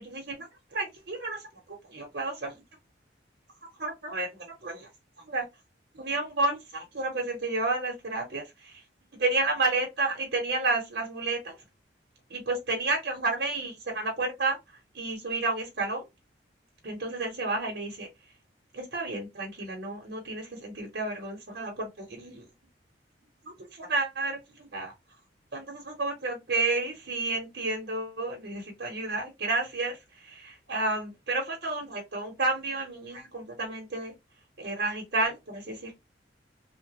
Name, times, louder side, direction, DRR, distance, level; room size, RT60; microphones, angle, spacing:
voice 1, 0.0-2.6 3.8-4.9 5.2-5.5 5.9-8.8 9.2-11.6 12.3-16.1 16.8-18.1 18.7-22.5 23.4-24.9 25.5-34.1 34.6-35.9, right 3 dB, 60° right, 0.9 m, -31 dB
2.8 x 2.3 x 2.9 m
head